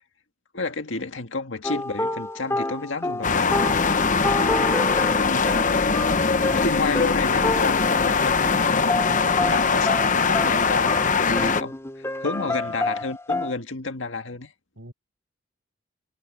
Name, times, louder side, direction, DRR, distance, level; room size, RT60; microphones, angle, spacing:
voice 1, 0.5-3.7 5.3-5.9 6.5-9.2 9.4-14.5, left 3 dB, 85° left, 1.8 m, -31 dB
sound 1, 1.6-8.1 8.4-8.6 8.9-13.5, left 2 dB, 15° left, 2.4 m, -29 dB
sound 2, 3.2-11.6, left 5 dB, 45° left, 0.9 m, -21 dB
voice 2, 12.4-12.8 14.8-14.9, right 1 dB, 90° right, 7.1 m, -46 dB
head